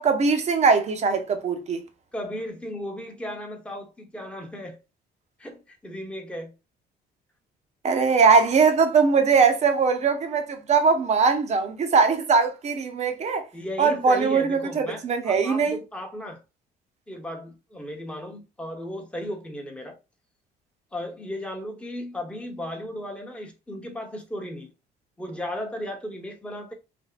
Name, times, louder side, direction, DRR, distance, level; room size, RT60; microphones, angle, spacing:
voice 1, 0.0-1.8 7.8-13.5 13.8-15.8, right 5 dB, 40° right, 0.8 m, -21 dB
voice 2, 2.1-4.8 5.4-6.5 13.5-16.4 17.1-20.0 20.9-24.7 25.2-26.7, equal, 5° left, 0.9 m, -35 dB
3.5 x 2.6 x 2.4 m
cardioid pair, 110°, 17 cm